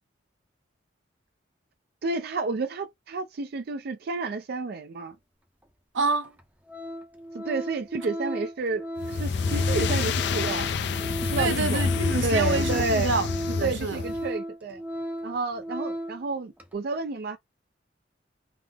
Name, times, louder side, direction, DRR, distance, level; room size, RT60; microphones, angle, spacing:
voice 1, 2.0-5.2 7.3-10.7 11.2-11.9 12.2-13.1 13.6-14.8 15.2-17.4, right 3 dB, 55° right, 0.4 m, -30 dB
Organ, 5.6-5.7 6.2-6.4 6.7-16.3 16.6-16.7, equal, 10° right, 0.5 m, -35 dB
voice 2, 5.9-6.3 11.4-14.0, right 3 dB, 90° right, 0.7 m, -28 dB
sound 1, 9.0-14.3, left 5 dB, 65° left, 0.4 m, -28 dB
3.5 x 2.0 x 3.3 m
head